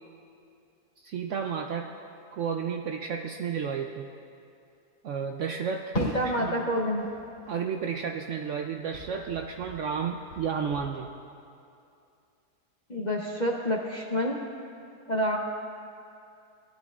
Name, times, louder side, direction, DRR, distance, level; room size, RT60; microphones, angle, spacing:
voice 1, 1.0-1.9 2.3-4.1 5.0-6.1 6.4-6.5 7.5-11.1, right 6 dB, 70° right, 3 dB, 0.7 m, -32 dB
Fireworks, 5.9-8.6 8.9-10.8, left 1 dB, 75° left, 2.8 m, -39 dB
voice 2, 5.9-7.1 12.9-14.4 15.1-15.4, equal, 45° left, -1 dB, 0.6 m, -28 dB
20.0 x 11.5 x 2.4 m, 2.5 s
omnidirectional pair, 1.7 m